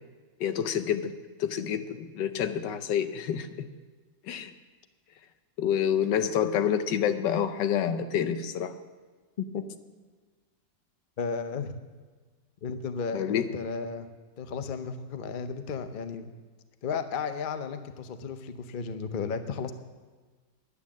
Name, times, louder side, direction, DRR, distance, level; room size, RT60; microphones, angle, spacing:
voice 1, 0.4-1.1 1.4-3.7 4.2-4.5 5.6-8.7 13.1-13.5, left 8 dB, 85° left, 10 dB, 1.4 m, -28 dB
voice 2, 9.4-9.7 11.2-11.8 12.6-14.1 14.4-16.3 16.8-19.7, left 5 dB, 50° left, 9 dB, 0.6 m, -34 dB
11.0 x 9.8 x 7.2 m, 1.4 s
omnidirectional pair, 1.9 m